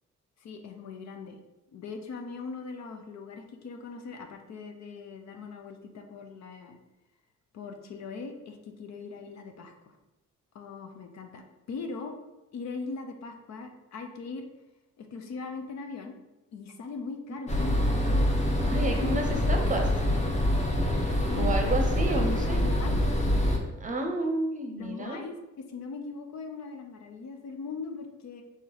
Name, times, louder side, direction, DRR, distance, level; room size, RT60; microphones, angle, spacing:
voice 1, 0.4-1.4 1.7-6.8 7.5-9.7 10.5-12.1 12.5-14.4 15.0-16.2 16.5-18.4 18.9-19.5 19.8-20.0 21.3-21.8 22.2-23.0 24.8-28.4, left 4 dB, 60° left, 5 dB, 0.7 m, -40 dB
sound 1, 17.5-23.6, left 1 dB, 20° left, 0.8 m, -25 dB
voice 2, 18.7-19.8 21.3-22.6 23.8-25.2, right 2 dB, 25° right, 3 dB, 0.7 m, -30 dB
4.2 x 3.0 x 3.9 m, 0.99 s
cardioid pair, 90°, 30 cm